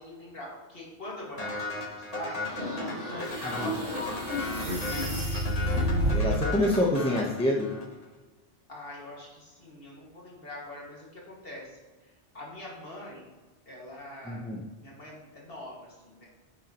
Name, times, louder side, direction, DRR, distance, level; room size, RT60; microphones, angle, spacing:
voice 1, 0.0-2.4 3.0-4.6 8.7-11.8 12.3-13.2 13.7-14.5 14.8-16.3, left 1 dB, 50° left, -4 dB, 2.2 m, -43 dB
sound 1, 1.4-8.0, left 2 dB, 35° left, 1.2 m, -37 dB
sound 2, 2.4-6.5, equal, 50° right, 2.1 m, -30 dB
voice 2, 5.9-7.7 14.2-14.6, left 1 dB, 5° left, -2 dB, 0.9 m, -26 dB
10.5 x 7.1 x 3.0 m, 1.2 s
omnidirectional pair, 1.2 m